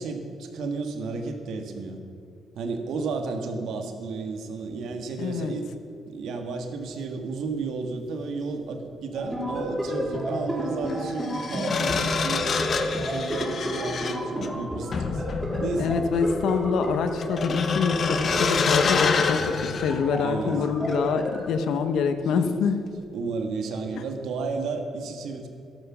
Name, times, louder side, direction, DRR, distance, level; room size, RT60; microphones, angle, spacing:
voice 1, 0.0-2.0 2.5-5.7 6.0-12.7 13.0-15.2 15.6-16.0 20.2-20.6 22.3-22.7 23.1-25.5, right 4 dB, 75° right, 5 dB, 1.6 m, -32 dB
voice 2, 5.2-5.5 15.8-22.8 23.9-24.0, left 6 dB, 80° left, 9 dB, 1.0 m, -26 dB
sound 1, 9.1-21.5, equal, 5° right, 3.4 m, -32 dB
sound 2, 9.5-9.6 10.9-20.6 20.9-21.1, left 5 dB, 50° left, 0.9 m, -27 dB
12.5 x 12.0 x 6.1 m, 2.4 s
cardioid pair, 90°, 0 cm